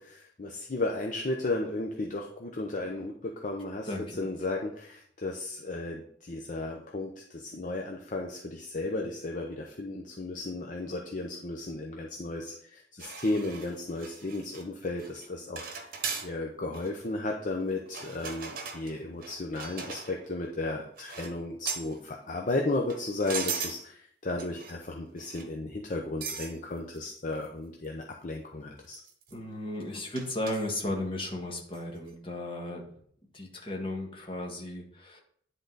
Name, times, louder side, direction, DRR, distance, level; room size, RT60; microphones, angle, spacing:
voice 1, 0.0-3.9 4.2-15.7 16.2-29.0, left 2 dB, 45° left, 1 dB, 0.7 m, -34 dB
voice 2, 3.8-4.2 29.3-32.8 33.3-35.2, left 1 dB, 30° left, -1 dB, 1.6 m, -35 dB
sound 1, 13.0-14.7 15.0-15.3 15.6-16.3 16.7-16.9 17.9-20.3 21.0-21.4 21.7-22.0 22.7-23.8 24.4-24.9 25.2-25.5 26.2-26.5 27.0-27.1 27.4-27.5 27.8-27.9 28.9-29.3 30.2-30.7 31.7-31.9, right 5 dB, 55° right, 1.1 m, -38 dB
10.0 x 3.9 x 3.9 m, 0.62 s
head